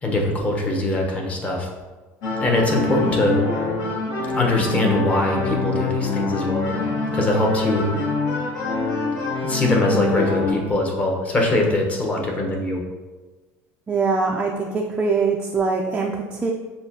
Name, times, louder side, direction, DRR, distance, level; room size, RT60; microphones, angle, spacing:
voice 1, 0.0-1.7 2.4-3.4 4.3-8.0 9.4-12.8, left 1 dB, 25° left, 0 dB, 0.9 m, -22 dB
sound 1, 2.2-10.5, left 3 dB, 70° left, 1.2 m, -25 dB
voice 2, 13.9-16.5, right 4 dB, 20° right, 0 dB, 0.3 m, -23 dB
6.8 x 2.3 x 2.7 m, 1.2 s
cardioid pair, 130°, 6 cm